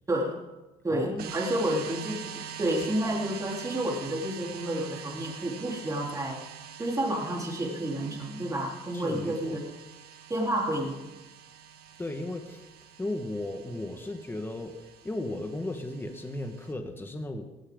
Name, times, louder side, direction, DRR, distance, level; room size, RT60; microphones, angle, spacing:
voice 1, 0.1-0.4 0.8-6.4 6.8-9.6 10.3-11.0, right 1 dB, 20° right, -2 dB, 3.8 m, -30 dB
voice 2, 0.9-1.4 8.9-9.6 12.0-12.6 13.0-17.4, left 1 dB, 15° left, 4 dB, 1.7 m, -35 dB
sound 1, 1.2-16.7, right 8 dB, 65° right, 1.5 m, -44 dB
17.5 x 16.0 x 3.9 m, 1.1 s
cardioid pair, 110°, 17 cm